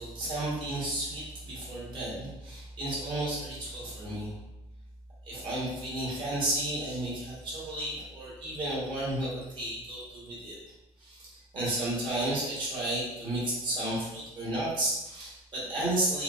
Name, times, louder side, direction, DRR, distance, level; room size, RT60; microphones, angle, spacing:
voice 1, 0.0-4.3 5.2-10.6 11.0-16.2, right 1 dB, 45° right, -7 dB, 1.2 m, -32 dB
4.3 x 2.0 x 2.4 m, 0.94 s
cardioid pair, 175°, 12 cm